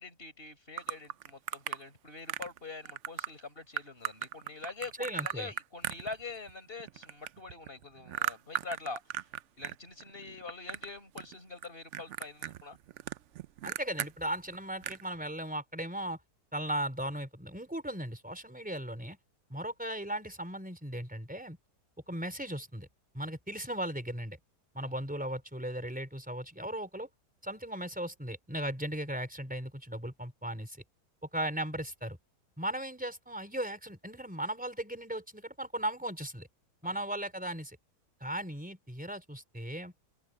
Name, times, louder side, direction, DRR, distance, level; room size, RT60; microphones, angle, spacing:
voice 1, 0.0-9.3 9.6-12.8 24.9-25.0 36.8-37.0, left 3 dB, 35° left, 5.5 m, -44 dB
sound 1, 0.8-1.8 2.3-2.6 2.9-3.3 3.8-6.5 6.8-9.8 10.0-10.9 11.2-11.7 11.9-14.1 14.5-14.6 14.8-15.0, right 12 dB, 70° right, 0.7 m, -37 dB
voice 2, 5.0-5.5 13.6-16.2 16.5-19.2 19.5-21.6 22.1-22.9 23.1-24.4 24.7-27.1 27.4-30.8 31.3-32.2 32.6-36.5 36.8-37.8 38.2-39.9, right 1 dB, 5° right, 4.4 m, -37 dB
omnidirectional pair, 1.8 m